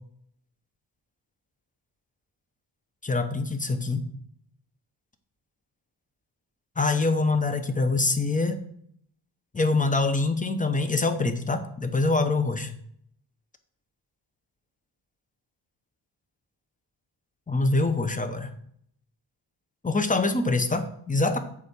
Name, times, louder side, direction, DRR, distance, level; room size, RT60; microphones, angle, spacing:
voice 1, 3.0-4.0 6.8-8.6 9.5-12.7 17.5-18.5 19.8-21.4, left 3 dB, 15° left, 9 dB, 0.7 m, -24 dB
8.5 x 3.6 x 6.9 m, 0.67 s
wide cardioid pair, 120°, 49 cm